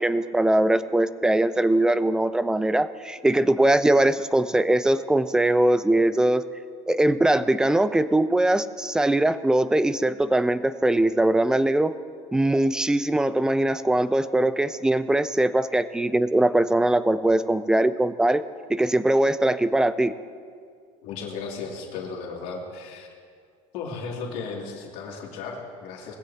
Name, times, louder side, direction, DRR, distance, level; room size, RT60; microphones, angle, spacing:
voice 1, 0.0-6.4 6.9-12.0 12.3-18.4 18.7-20.1, right 1 dB, 5° right, 14 dB, 0.3 m, -21 dB
voice 2, 21.0-23.1 23.7-26.2, left 4 dB, 55° left, -1 dB, 2.6 m, -35 dB
20.0 x 15.5 x 2.8 m, 2.1 s
cardioid pair, 155°, 17 cm